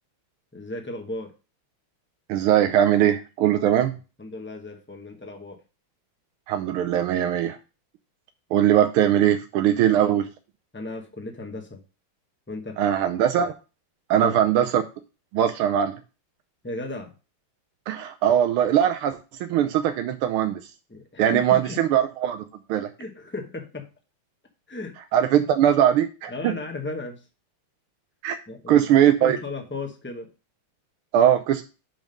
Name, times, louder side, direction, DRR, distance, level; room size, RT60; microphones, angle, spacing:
voice 1, 0.5-1.3 4.2-5.6 10.7-11.8 12.5-12.8 14.1-14.4 16.6-17.1 20.9-21.3 21.6-21.8 23.0-23.9 24.7-24.9 26.3-27.2 28.5-30.3, left 2 dB, 15° left, 3 dB, 0.3 m, -35 dB
voice 2, 2.3-3.9 6.5-7.6 8.5-10.3 12.8-13.5 14.1-14.8 15.3-16.0 17.9-20.6 21.2-22.4 22.7-22.9 25.1-26.5 28.2-28.4 28.7-29.4 31.1-31.6, right 10 dB, 85° right, 8 dB, 1.5 m, -20 dB
6.1 x 5.3 x 5.1 m, 0.32 s
omnidirectional pair, 2.3 m